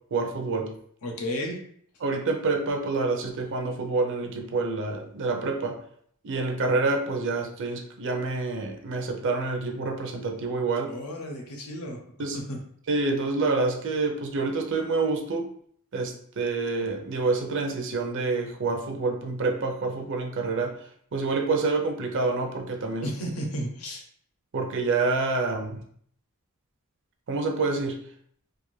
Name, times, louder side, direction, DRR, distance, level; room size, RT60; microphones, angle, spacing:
voice 1, 0.1-0.7 2.0-5.8 6.2-10.9 12.2-12.4 12.9-15.5 15.9-20.7 21.1-23.1 24.5-25.8 27.3-28.0, right 3 dB, 60° right, 3 dB, 0.5 m, -27 dB
voice 2, 1.0-1.6 10.9-12.0 12.3-12.6 23.0-24.0, equal, 85° left, 2 dB, 0.7 m, -33 dB
2.5 x 2.4 x 3.1 m, 0.63 s
head